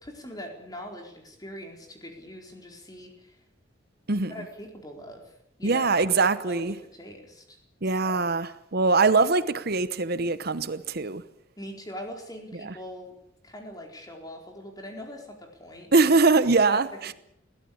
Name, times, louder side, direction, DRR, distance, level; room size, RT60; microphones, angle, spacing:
voice 1, 0.0-3.4 4.1-5.3 5.6-5.9 6.5-7.6 7.8-8.2 11.6-13.1 13.4-15.9 16.7-16.8, equal, 20° left, 4.4 m, -42 dB
voice 2, 4.1-4.4 5.6-6.7 7.8-11.2 12.6-12.7 15.9-17.1, right 3 dB, 50° right, 1.0 m, -23 dB
22.0 x 16.5 x 8.6 m
head